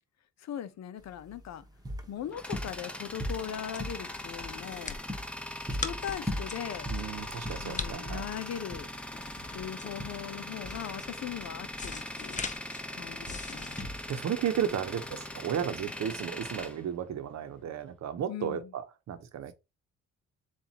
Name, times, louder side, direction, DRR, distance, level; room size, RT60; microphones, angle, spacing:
voice 1, 0.4-1.6 2.1-5.0 5.8-6.9 7.6-8.9 9.5-12.4 12.9-13.8 18.3-18.7, left 9 dB, 65° left, 0.7 m, -39 dB
sound 1, 1.0-16.6, equal, 15° right, 1.1 m, -41 dB
Tools, 1.8-17.7, left 1 dB, 5° left, 0.9 m, -41 dB
sound 2, 3.2-14.9, left 5 dB, 25° left, 0.6 m, -43 dB
voice 2, 6.9-8.2 14.1-19.5, right 9 dB, 60° right, 0.9 m, -34 dB
7.2 x 2.5 x 2.8 m
cardioid pair, 90°, 30 cm